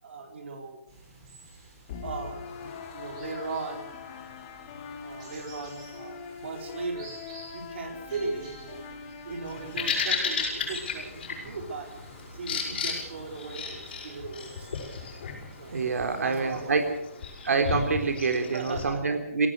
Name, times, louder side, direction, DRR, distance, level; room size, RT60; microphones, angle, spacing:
voice 1, 0.0-0.8 2.0-3.9 5.0-7.1 7.5-8.9 9.2-11.9 12.3-15.1 15.5-15.8 16.2-17.0 18.5-19.2, right 4 dB, 50° right, 3 dB, 4.4 m, -38 dB
sound 1, 0.9-16.9, right 2 dB, 25° right, 6.2 m, -51 dB
sound 2, 1.9-10.9, left 6 dB, 25° left, 1.7 m, -42 dB
Bird vocalization bird call bird song, 9.5-18.9, left 5 dB, 40° left, 6.9 m, -34 dB
voice 2, 15.7-16.9 17.4-19.5, right 4 dB, 90° right, 5 dB, 3.4 m, -26 dB
24.5 x 17.5 x 6.5 m, 0.80 s
hypercardioid pair, 175°, 8 cm